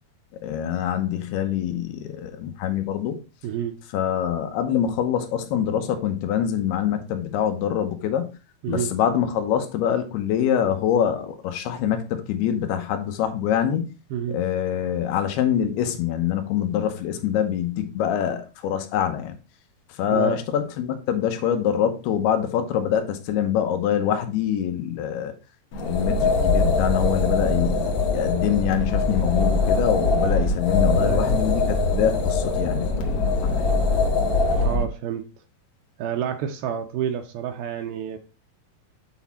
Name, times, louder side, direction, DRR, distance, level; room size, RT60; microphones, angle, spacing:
voice 1, 0.4-3.2 3.9-8.3 8.7-13.9 14.3-19.3 19.9-25.3 25.8-33.7, left 9 dB, 85° left, 2.9 m, -25 dB
voice 2, 3.4-3.8 8.6-8.9 14.1-14.4 20.1-20.4 30.9-31.3 34.6-35.3 36.0-38.2, right 9 dB, 85° right, 2.4 m, -29 dB
sound 1, 25.7-34.9, left 3 dB, 65° left, 2.0 m, -22 dB
8.1 x 4.2 x 4.2 m
omnidirectional pair, 4.6 m